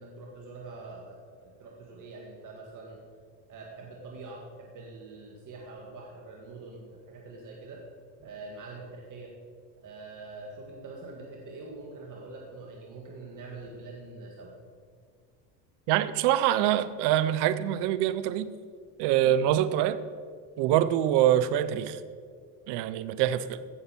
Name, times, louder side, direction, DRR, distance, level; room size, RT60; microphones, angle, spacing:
voice 1, 0.0-3.0 3.5-7.8 8.2-9.3 9.8-14.6, right 3 dB, 40° right, 1.9 m, -44 dB
voice 2, 15.9-18.5 19.0-20.0 20.6-22.0 22.7-23.6, right 11 dB, 60° right, 0.8 m, -25 dB
15.5 x 6.8 x 4.5 m
hypercardioid pair, 85°, 48 cm